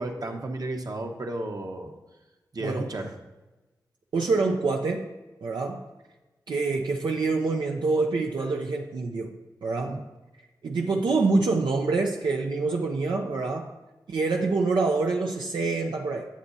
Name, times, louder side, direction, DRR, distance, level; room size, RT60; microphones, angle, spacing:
voice 1, 0.0-1.9 2.5-3.1 9.8-10.0, right 2 dB, 55° right, 3 dB, 1.1 m, -33 dB
voice 2, 4.1-5.1 5.4-5.8 6.5-9.3 9.6-10.0 10.6-13.7 14.1-16.3, right 3 dB, 85° right, 1 dB, 0.6 m, -26 dB
10.0 x 7.9 x 2.7 m, 1.1 s
cardioid pair, 40°, 8 cm